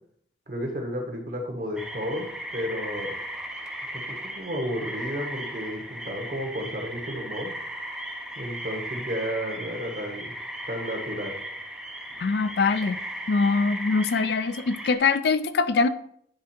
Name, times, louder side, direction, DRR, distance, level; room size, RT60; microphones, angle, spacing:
voice 1, 0.5-3.2 3.9-7.5 8.4-10.3 10.7-11.4, equal, 50° right, 2 dB, 1.4 m, -32 dB
sound 1, 1.8-15.0, equal, 5° right, 0.5 m, -36 dB
voice 2, 12.2-13.0 13.3-15.9, left 4 dB, 60° left, 12 dB, 0.4 m, -23 dB
9.5 x 3.7 x 4.4 m, 0.67 s
head